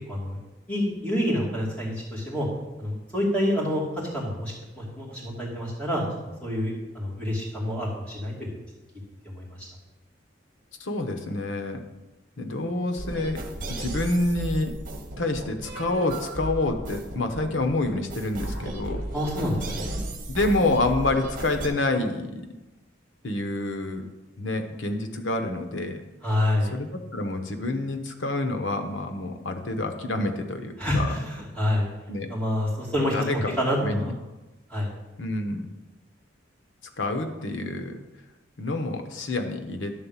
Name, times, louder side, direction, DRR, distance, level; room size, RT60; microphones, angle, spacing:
voice 1, 0.1-0.4 0.7-2.5 2.8-6.0 6.4-8.5 9.2-9.7 19.1-20.0 26.2-26.8 30.8-31.9 32.3-33.1 33.6-34.1 34.7-34.9, left 1 dB, 5° left, -7 dB, 2.8 m, -27 dB
voice 2, 10.8-11.8 12.4-13.4 13.8-14.7 15.2-19.0 20.3-22.5 23.2-24.0 24.4-26.0 26.7-31.1 32.1-32.3 33.1-34.1 35.2-35.7 37.0-38.0 38.6-39.9, left 2 dB, 85° left, 5 dB, 1.0 m, -28 dB
sound 1, 13.0-21.7, right 1 dB, 45° right, 1.2 m, -35 dB
11.0 x 4.0 x 7.2 m, 1.1 s
head